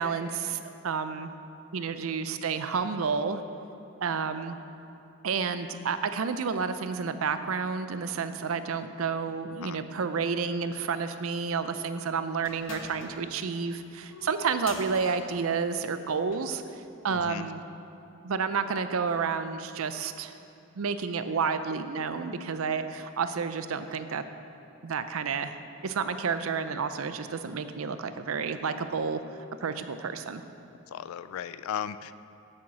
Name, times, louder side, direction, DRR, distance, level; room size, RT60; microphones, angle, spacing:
voice 1, 0.0-1.3 1.7-3.4 4.0-4.6 5.2-17.6 18.2-20.3 20.8-24.2 24.8-25.5 25.8-29.2 29.6-30.4, right 5 dB, 85° right, 10 dB, 0.5 m, -30 dB
sound 1, 12.4-16.5, left 2 dB, 65° left, 1.0 m, -45 dB
voice 2, 17.1-17.5 30.9-32.2, left 9 dB, 90° left, 14 dB, 0.3 m, -36 dB
8.8 x 7.2 x 6.1 m, 2.8 s
head